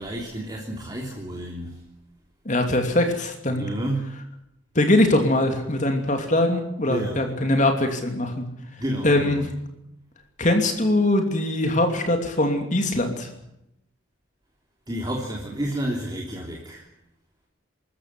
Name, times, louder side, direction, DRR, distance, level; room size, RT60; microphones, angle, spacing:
voice 1, 0.0-1.8 3.4-4.1 6.9-7.3 8.8-9.5 14.9-16.9, right 1 dB, 20° right, 0 dB, 3.3 m, -30 dB
voice 2, 2.4-3.7 4.7-8.4 9.0-9.5 10.4-13.3, left 1 dB, 35° left, 5 dB, 2.9 m, -22 dB
26.0 x 14.0 x 9.7 m, 0.82 s
head